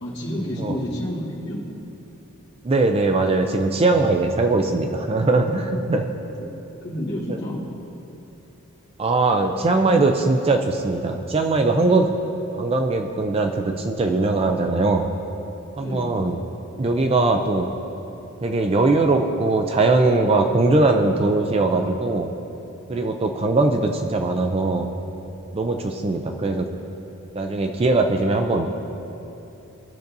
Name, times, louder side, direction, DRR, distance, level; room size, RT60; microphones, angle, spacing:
voice 1, 0.0-1.6 6.2-6.5 6.8-7.6 15.8-16.2 22.9-23.1, equal, 50° left, -6 dB, 1.8 m, -30 dB
voice 2, 2.6-6.1 9.0-12.1 12.5-15.1 15.8-16.4 16.8-17.7 18.4-22.3 22.9-24.9 25.5-26.7 27.3-28.7, right 3 dB, 25° right, 4 dB, 0.4 m, -20 dB
17.0 x 6.7 x 2.6 m, 2.9 s
head